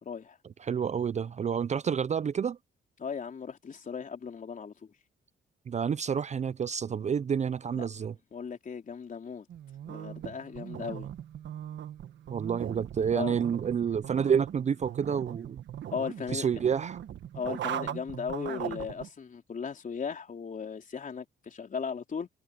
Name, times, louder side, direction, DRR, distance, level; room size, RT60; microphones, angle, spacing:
voice 1, 0.0-0.4 3.0-4.7 7.7-7.9 8.3-9.5 9.9-11.1 13.1-13.4 15.9-16.5 17.3-22.3, left 6 dB, 40° left, 3.9 m, -37 dB
voice 2, 0.6-2.6 5.7-8.2 12.3-15.6 16.3-17.0, right 7 dB, 35° right, 0.5 m, -29 dB
sound 1, 9.5-19.1, right 10 dB, 65° right, 1.5 m, -39 dB
cardioid pair, 90°, 20 cm